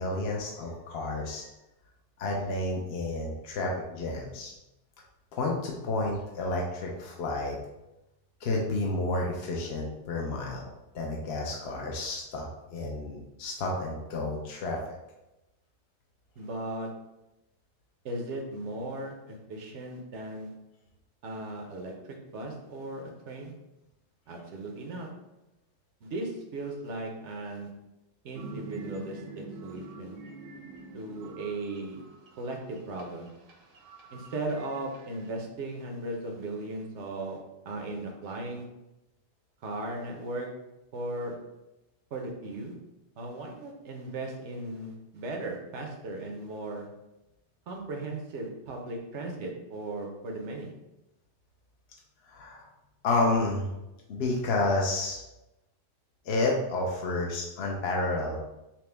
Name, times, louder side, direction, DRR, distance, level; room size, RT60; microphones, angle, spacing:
voice 1, 0.0-1.5 2.2-4.5 5.3-7.6 8.4-10.6 10.9-14.9 52.3-52.7 53.0-53.7 54.1-55.2 56.2-58.5, left 2 dB, 70° left, -1 dB, 0.8 m, -30 dB
voice 2, 16.4-16.9 18.0-20.5 21.2-23.5 24.3-25.1 26.0-27.7 28.2-30.2 30.9-32.0 32.4-33.3 34.1-37.4 37.6-38.6 39.6-40.5 40.9-41.3 42.1-42.7 43.2-46.9 47.7-50.7, right 2 dB, 85° right, 1 dB, 1.1 m, -37 dB
sound 1, 28.3-35.3, right 2 dB, 60° right, 0.8 m, -46 dB
5.7 x 2.1 x 3.3 m, 0.95 s
omnidirectional pair, 1.1 m